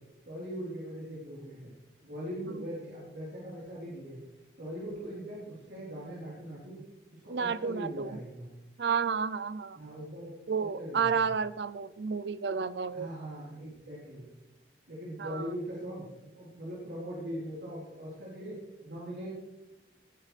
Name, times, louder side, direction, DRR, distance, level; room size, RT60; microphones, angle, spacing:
voice 1, 0.3-1.7 2.0-4.2 4.6-6.8 7.1-8.5 9.7-11.3 12.9-14.3 14.9-16.1 16.3-19.3, equal, 90° right, -7 dB, 3.9 m, -41 dB
voice 2, 7.3-8.2 8.8-9.8 10.5-13.1 15.2-15.4, right 6 dB, 70° right, 16 dB, 0.5 m, -31 dB
18.5 x 10.5 x 3.4 m, 1.0 s
head